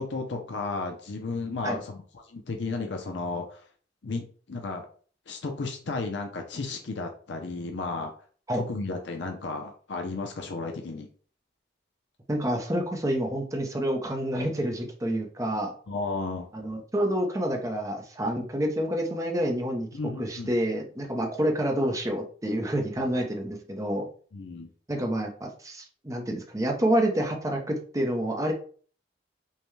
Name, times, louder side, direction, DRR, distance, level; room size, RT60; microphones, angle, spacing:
voice 1, 0.0-2.0 2.3-3.6 4.0-4.9 5.3-8.1 8.5-11.1 15.9-16.5 19.9-20.5 24.3-24.7, left 3 dB, 70° left, 3 dB, 0.6 m, -33 dB
voice 2, 12.3-15.7 16.5-24.1 24.9-28.5, right 1 dB, 15° right, 2 dB, 0.7 m, -28 dB
5.5 x 2.2 x 3.2 m, 0.43 s
head